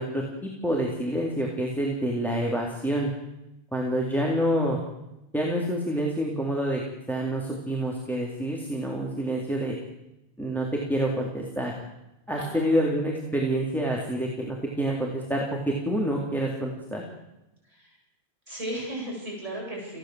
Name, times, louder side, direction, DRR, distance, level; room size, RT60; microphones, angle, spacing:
voice 1, 0.0-3.1 3.7-4.8 5.3-6.8 7.1-9.8 10.4-11.7 12.3-17.0, right 1 dB, ahead, -2 dB, 3.7 m, -27 dB
voice 2, 12.3-12.8 17.7-17.9 18.5-20.0, right 1 dB, 35° right, -4 dB, 8.1 m, -35 dB
28.0 x 17.0 x 7.9 m, 0.93 s
omnidirectional pair, 1.1 m